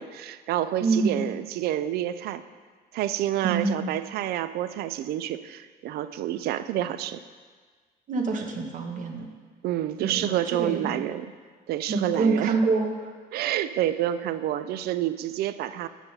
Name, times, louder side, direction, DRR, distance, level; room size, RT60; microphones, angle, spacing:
voice 1, 0.0-2.4 2.9-7.2 9.6-11.3 11.7-12.6 13.3-15.9, right 12 dB, 70° right, 13 dB, 0.4 m, -28 dB
voice 2, 0.8-1.2 3.4-3.9 8.1-9.3 10.0-11.0 11.9-13.1, right 4 dB, 50° right, 2 dB, 1.0 m, -26 dB
9.0 x 5.8 x 3.9 m, 1.5 s
cardioid pair, 110°, 17 cm